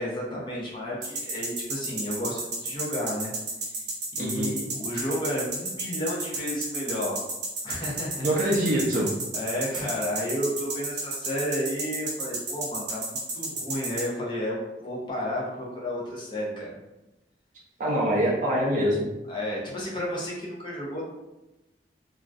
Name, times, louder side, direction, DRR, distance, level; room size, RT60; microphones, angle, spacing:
voice 1, 0.0-3.3 3.7-3.8 4.2-7.2 7.6-8.6 9.3-16.8 19.3-21.1, equal, 25° left, -5 dB, 0.6 m, -32 dB
sound 1, 1.0-14.0, right 3 dB, 75° right, 0.8 m, -31 dB
voice 2, 4.2-4.5 8.2-9.1 17.8-19.1, equal, 45° right, -4 dB, 0.4 m, -24 dB
2.5 x 2.2 x 2.2 m, 1.0 s
head